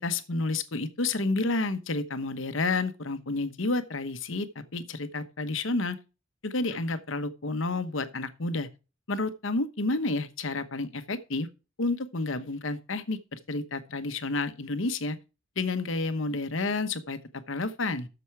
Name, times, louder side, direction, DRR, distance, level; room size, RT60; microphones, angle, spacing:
voice 1, 0.0-6.0 6.4-8.7 9.1-11.5 11.8-15.2 15.6-17.2 17.5-18.1, left 3 dB, 65° left, 1.0 m, -30 dB
8.0 x 7.0 x 5.9 m
head